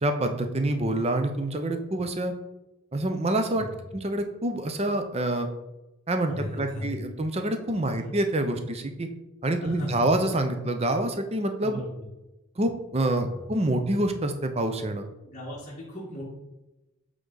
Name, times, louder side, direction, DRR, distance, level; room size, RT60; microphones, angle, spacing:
voice 1, 0.0-2.3 2.9-3.7 3.9-5.5 6.1-9.1 9.4-11.8 12.6-15.1, right 1 dB, 30° right, 6 dB, 0.6 m, -27 dB
voice 2, 6.3-7.0 9.6-10.0 11.6-11.9 13.2-13.3 15.2-16.2, left 1 dB, 35° left, -6 dB, 1.5 m, -37 dB
8.0 x 3.8 x 3.9 m, 0.99 s
head